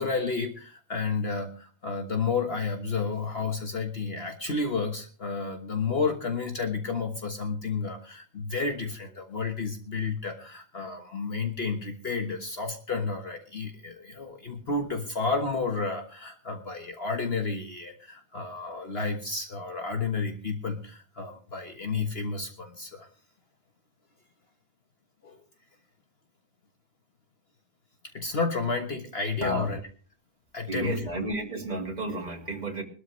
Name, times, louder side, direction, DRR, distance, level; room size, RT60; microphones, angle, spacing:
voice 1, 0.0-23.1 25.2-25.4 28.1-29.8 30.5-31.1, left 4 dB, 50° left, 4 dB, 1.6 m, -31 dB
voice 2, 30.7-32.8, right 1 dB, 30° right, 0 dB, 2.7 m, -32 dB
21.0 x 13.0 x 3.1 m, 0.39 s
omnidirectional pair, 1.4 m